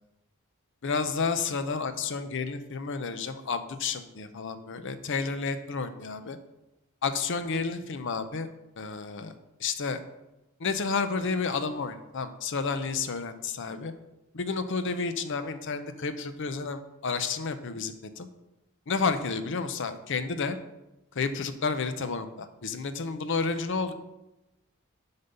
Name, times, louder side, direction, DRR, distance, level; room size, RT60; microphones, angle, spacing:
voice 1, 0.8-6.4 7.0-8.5 8.8-9.3 9.6-10.0 10.6-13.9 14.3-18.3 18.9-20.6 21.2-23.9, left 4 dB, 60° left, 10 dB, 0.7 m, -31 dB
8.0 x 5.3 x 5.4 m, 0.96 s
head